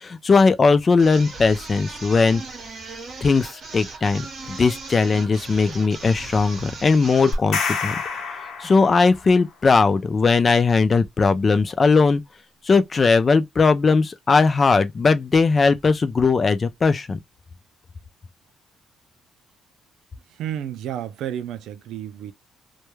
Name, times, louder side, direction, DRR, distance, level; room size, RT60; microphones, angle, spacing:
voice 1, 0.0-2.4 3.2-8.0 8.6-12.2 12.7-17.2, left 4 dB, 30° left, 0.3 m, -19 dB
sound 1, 1.0-7.5, right 3 dB, 40° right, 1.0 m, -38 dB
sound 2, 7.3-9.3, left 4 dB, 70° left, 0.7 m, -27 dB
voice 2, 20.3-22.3, right 10 dB, 85° right, 0.3 m, -31 dB
2.2 x 2.2 x 3.0 m
cardioid pair, 135°, 0 cm